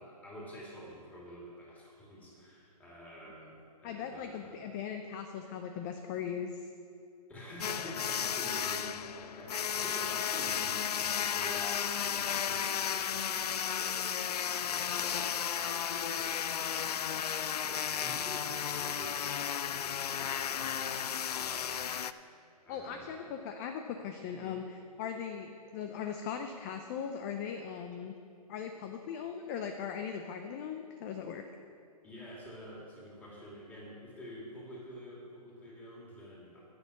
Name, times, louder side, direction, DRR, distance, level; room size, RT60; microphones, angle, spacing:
voice 1, 0.0-4.7 7.3-22.0 22.6-23.2 24.3-24.6 32.0-36.6, equal, 10° left, -5 dB, 2.7 m, -48 dB
voice 2, 3.8-6.7 22.7-28.1 28.5-31.4, left 7 dB, 25° left, 6 dB, 0.5 m, -39 dB
sound 1, 7.6-22.1, left 8 dB, 75° left, 0.5 m, -34 dB
10.5 x 6.2 x 8.2 m, 2.4 s
hypercardioid pair, 145°, 20 cm